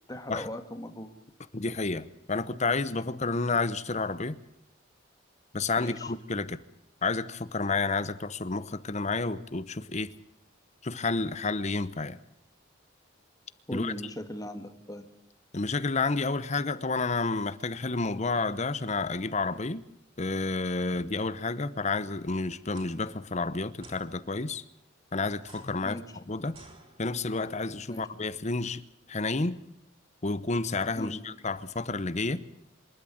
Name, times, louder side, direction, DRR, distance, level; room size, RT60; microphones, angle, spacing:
voice 1, 0.1-1.1 5.8-6.1 13.7-15.1 25.8-26.0 27.9-28.1 31.0-31.2, equal, 20° left, 6 dB, 1.9 m, -38 dB
voice 2, 1.5-4.4 5.5-6.6 7.0-10.1 10.8-12.2 13.7-13.9 15.5-19.8 20.2-24.6 25.1-26.6 27.0-28.8 29.1-29.6 30.2-32.4, left 3 dB, 35° left, 15 dB, 0.9 m, -30 dB
sound 1, 22.6-22.9 23.8-24.0 25.4-27.4, right 2 dB, 30° right, 5.3 m, -54 dB
26.5 x 12.5 x 8.6 m, 0.82 s
head